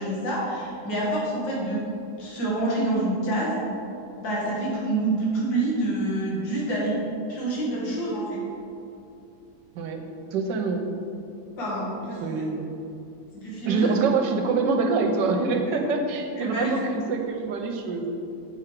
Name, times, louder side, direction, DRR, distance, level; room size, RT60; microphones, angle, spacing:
voice 1, 0.0-1.8 2.2-3.6 4.2-6.9 7.3-8.4 11.6-12.3 13.4-13.9 15.7-15.8 16.4-16.7, right 2 dB, 90° left, -5 dB, 2.3 m, -27 dB
voice 2, 9.7-10.9 12.2-12.7 13.7-18.1, right 4 dB, 75° right, 4 dB, 1.4 m, -25 dB
7.2 x 4.9 x 4.5 m, 2.6 s
omnidirectional pair, 2.0 m